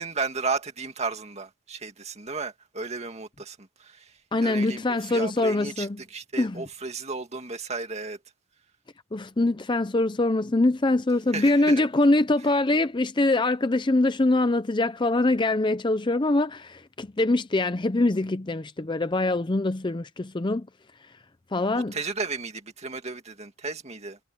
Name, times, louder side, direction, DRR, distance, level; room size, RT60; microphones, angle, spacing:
voice 1, 0.0-8.2 11.3-11.8 21.9-24.2, right 4 dB, 30° right, 2.2 m, -34 dB
voice 2, 4.3-6.0 6.4-6.6 9.1-20.7 21.5-22.0, left 2 dB, 20° left, 0.5 m, -23 dB
head